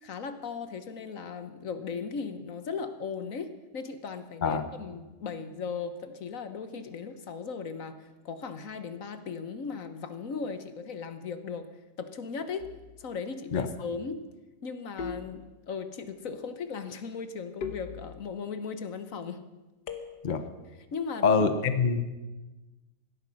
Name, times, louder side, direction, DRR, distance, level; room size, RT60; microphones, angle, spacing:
voice 1, 0.0-11.7 12.0-12.7 13.0-14.3 14.6-19.4 20.9-21.5, left 5 dB, 55° left, 10 dB, 1.3 m, -37 dB
sound 1, 12.6-13.1 15.0-15.9 17.6-18.6 19.9-20.6, left 5 dB, 80° left, 1.8 m, -41 dB
voice 2, 21.2-22.0, left 5 dB, 35° left, 10 dB, 0.8 m, -24 dB
18.0 x 12.5 x 6.3 m, 1.1 s
omnidirectional pair, 1.8 m